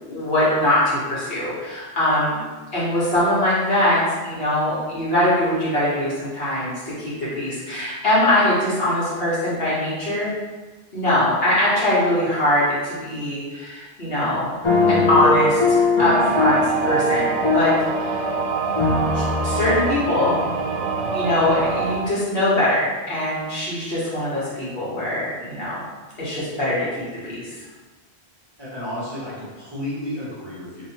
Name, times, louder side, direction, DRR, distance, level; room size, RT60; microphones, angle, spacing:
voice 1, 0.0-2.4 2.7-10.3 10.9-14.6 14.9-18.2 19.1-20.4 21.1-25.8 26.1-27.5, left 1 dB, 65° left, -9 dB, 1.6 m, -22 dB
sound 1, 14.6-18.2 18.7-19.8, left 3 dB, 40° left, 0.5 m, -21 dB
sound 2, 16.1-22.0, right 5 dB, 85° right, 0.9 m, -25 dB
voice 2, 28.6-30.9, left 1 dB, 25° right, -10 dB, 1.0 m, -32 dB
3.0 x 2.9 x 4.2 m, 1.3 s
omnidirectional pair, 1.1 m